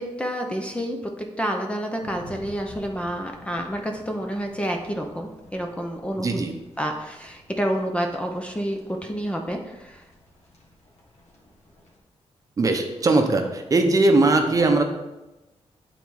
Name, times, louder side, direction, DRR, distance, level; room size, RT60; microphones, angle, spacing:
voice 1, 0.0-6.3 6.8-10.0, equal, 10° left, 2 dB, 0.5 m, -29 dB
sound 1, 2.0-12.0, left 1 dB, 85° left, 1.6 m, -50 dB
voice 2, 6.2-6.6 12.6-14.8, right 2 dB, 30° right, 4 dB, 0.7 m, -20 dB
9.0 x 4.0 x 4.7 m, 1.0 s
wide cardioid pair, 175°, 11 cm